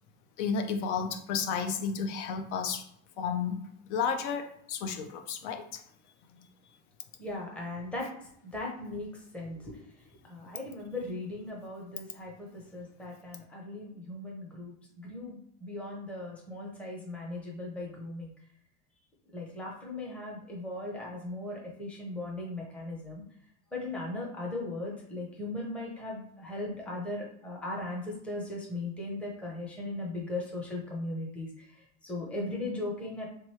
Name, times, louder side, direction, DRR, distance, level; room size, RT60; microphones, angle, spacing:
voice 1, 0.4-2.9 3.2-3.6 3.9-5.8 6.3-6.4, left 6 dB, 85° left, 6 dB, 0.7 m, -32 dB
voice 2, 7.2-8.1 8.4-18.3 19.3-23.2 23.7-33.3, left 2 dB, 5° left, -2 dB, 0.5 m, -38 dB
3.4 x 3.0 x 3.1 m, 0.70 s
cardioid pair, 160°, 35 cm